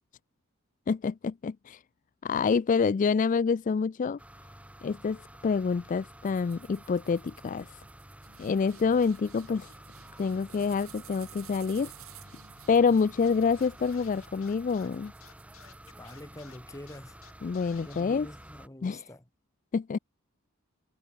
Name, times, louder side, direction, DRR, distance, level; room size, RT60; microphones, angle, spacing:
voice 1, 0.9-1.8 2.2-4.2 4.8-7.8 8.4-9.7 10.2-11.9 12.7-15.1 17.4-18.3 18.8-19.1 19.7-20.0, left 5 dB, 35° left, 0.3 m, -27 dB
sound 1, 4.2-18.7, right 1 dB, 5° right, 1.5 m, -51 dB
sound 2, 6.2-16.8, right 10 dB, 70° right, 3.2 m, -54 dB
Scratching (performance technique), 13.2-18.0, left 8 dB, 65° left, 5.6 m, -54 dB
voice 2, 16.0-17.1 17.7-19.2, left 1 dB, 15° left, 1.2 m, -45 dB
head